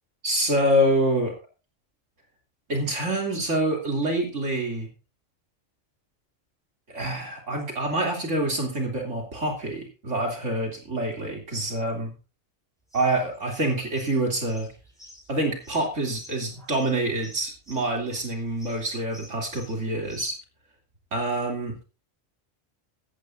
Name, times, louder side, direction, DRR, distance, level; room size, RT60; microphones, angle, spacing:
voice 1, 0.2-1.4 2.7-4.9 6.9-12.1 12.9-14.7 15.3-20.4 21.1-21.8, right 1 dB, 70° right, 1 dB, 3.5 m, -26 dB
sound 1, 12.9-20.3, left 1 dB, ahead, 7.9 m, -51 dB
16.0 x 14.0 x 2.7 m, 0.31 s
omnidirectional pair, 1.3 m